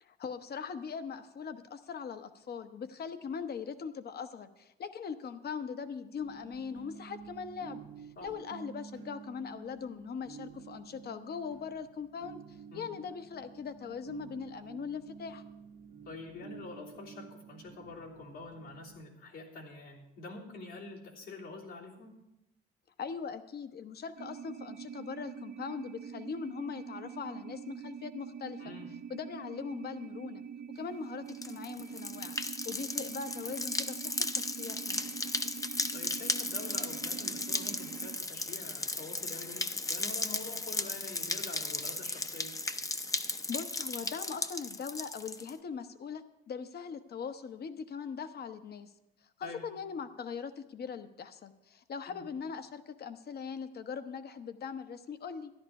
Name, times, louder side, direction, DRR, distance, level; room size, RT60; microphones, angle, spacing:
voice 1, 0.0-15.4 23.0-28.6 29.1-30.4 30.7-32.4 32.6-35.0 43.5-48.9 49.4-55.5, left 6 dB, 55° left, 10 dB, 0.9 m, -41 dB
sound 1, 6.2-19.0, right 7 dB, 70° right, 0.9 m, -50 dB
voice 2, 16.0-22.2 28.6-28.9 35.9-42.5 49.4-49.6 52.1-52.2, left 3 dB, 85° left, -5 dB, 3.4 m, -46 dB
sound 2, 24.2-38.2, right 7 dB, 45° right, 0.4 m, -45 dB
sound 3, 31.3-45.5, left 2 dB, 15° left, 0.6 m, -36 dB
13.5 x 11.0 x 4.7 m, 0.88 s
cardioid pair, 90°, 20 cm